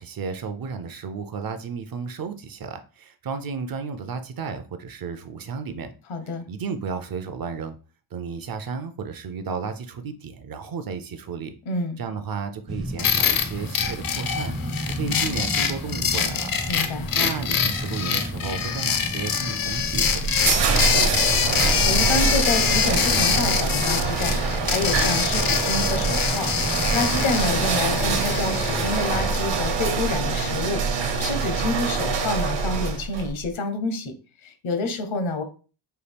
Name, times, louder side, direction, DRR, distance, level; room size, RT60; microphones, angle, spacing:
voice 1, 0.0-5.9 6.5-7.8 8.1-11.5 12.0-14.5 14.9-16.5 17.1-21.3, right 5 dB, 50° right, 9 dB, 0.5 m, -33 dB
voice 2, 6.1-6.5 11.7-12.0 16.7-17.1 21.8-24.3 24.7-26.5 26.9-34.1 34.4-35.4, left 3 dB, 75° left, 7 dB, 1.0 m, -28 dB
sound 1, 12.7-31.7, equal, ahead, 0.4 m, -34 dB
sound 2, 13.0-30.0, left 7 dB, 45° left, 0.6 m, -25 dB
sound 3, 19.8-33.3, right 4 dB, 65° right, 1.0 m, -25 dB
5.5 x 2.3 x 3.4 m, 0.36 s
wide cardioid pair, 115°, 48 cm